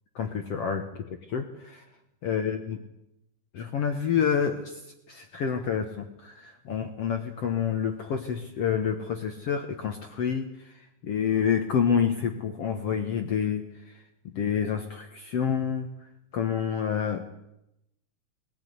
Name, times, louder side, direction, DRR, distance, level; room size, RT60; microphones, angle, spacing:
voice 1, 0.2-0.9 1.3-1.8 2.2-2.8 3.5-4.8 5.1-14.0 14.3-15.9 16.3-17.3, left 7 dB, 60° left, 6 dB, 1.9 m, -28 dB
20.5 x 15.5 x 9.5 m, 0.86 s
omnidirectional pair, 3.8 m